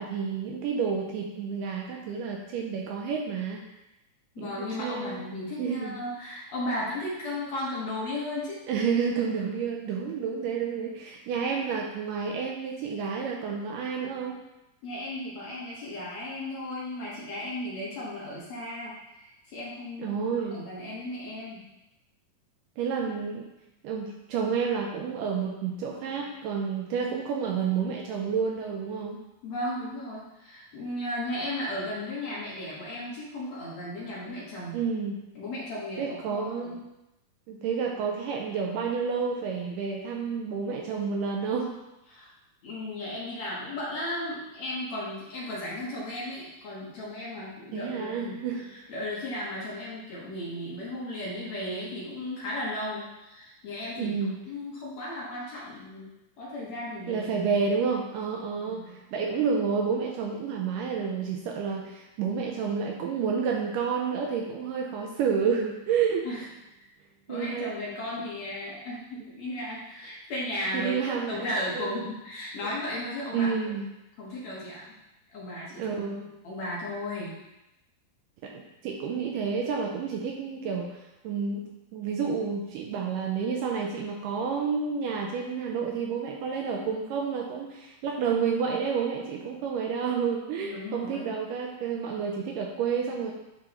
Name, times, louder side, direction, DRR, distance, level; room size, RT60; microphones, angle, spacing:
voice 1, 0.0-3.6 4.4-5.2 5.6-6.0 8.7-14.4 20.0-20.6 22.8-23.5 23.8-29.2 34.7-35.2 36.0-36.8 37.5-41.8 47.7-48.7 54.0-54.3 57.1-66.3 67.3-67.7 70.7-72.1 73.3-73.9 75.8-76.3 78.4-81.0 81.2-81.7 81.9-93.3, right 6 dB, 80° right, 0 dB, 2.1 m, -30 dB
voice 2, 4.4-8.6 14.8-18.9 19.2-21.6 29.4-34.8 35.3-36.7 42.1-42.3 42.6-56.1 56.4-57.4 58.6-58.9 66.2-66.5 67.3-71.0 71.3-73.5 74.2-74.8 75.3-75.9 76.4-77.3 90.6-91.3, left 1 dB, 60° left, -6 dB, 2.1 m, -35 dB
10.5 x 3.8 x 2.9 m, 0.93 s
omnidirectional pair, 4.2 m